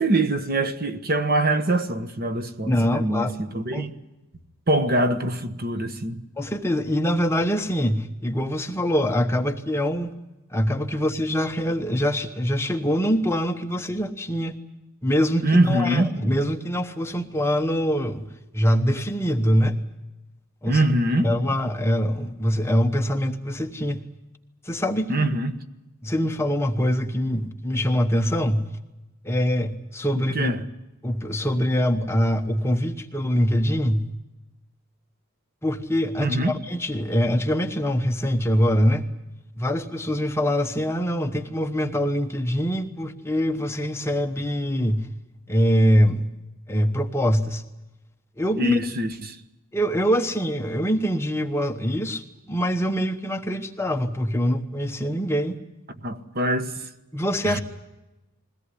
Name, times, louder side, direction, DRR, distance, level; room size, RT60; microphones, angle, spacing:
voice 1, 0.0-3.9 4.7-6.2 15.4-16.1 20.7-21.3 25.1-25.6 30.3-30.6 36.2-36.5 48.6-49.4 56.0-56.7 57.4-57.6, right 1 dB, 40° right, 1.3 m, -23 dB
voice 2, 2.7-3.3 3.7-3.9 6.4-10.1 10.5-14.5 15.0-18.3 18.5-19.8 20.6-20.8 21.2-24.0 24.6-25.3 26.0-28.7 29.2-30.5 31.0-34.1 35.6-39.0 39.6-45.1 45.5-46.3 46.7-47.6 48.4-48.8 49.7-55.6 57.1-57.6, equal, 10° left, 1.0 m, -24 dB
21.5 x 17.5 x 9.8 m
head